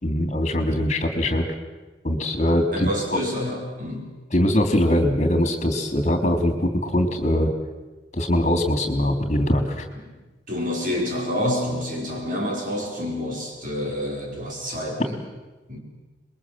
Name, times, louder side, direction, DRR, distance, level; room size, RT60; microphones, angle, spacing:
voice 1, 0.0-1.4 2.0-2.9 4.3-7.5 8.1-9.9, left 1 dB, 40° left, 7 dB, 3.2 m, -22 dB
voice 2, 2.7-4.1 10.0-10.1 10.5-15.2 15.7-15.8, left 1 dB, 45° right, 0 dB, 4.6 m, -28 dB
26.0 x 22.0 x 7.6 m, 1.2 s
head